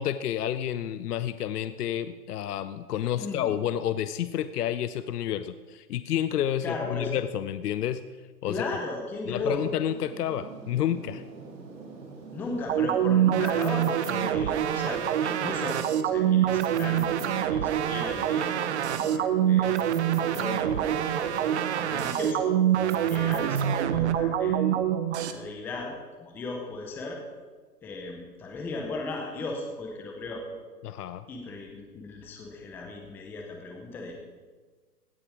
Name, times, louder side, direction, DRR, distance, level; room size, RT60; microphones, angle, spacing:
voice 1, 0.0-8.0 8.4-8.7 9.3-11.2 30.8-31.2, left 10 dB, 70° left, 13 dB, 0.7 m, -30 dB
voice 2, 3.2-3.5 6.6-7.1 8.5-9.6 12.3-19.7 20.2-24.8 25.2-25.9 26.2-27.2 27.8-30.4 31.3-34.2, left 3 dB, 5° left, 1 dB, 0.6 m, -36 dB
sound 1, 9.3-22.5, right 3 dB, 85° right, 2.9 m, -45 dB
sound 2, 12.7-25.3, right 10 dB, 45° right, 0.8 m, -25 dB
16.5 x 7.0 x 4.9 m, 1.4 s
hypercardioid pair, 140°, 49 cm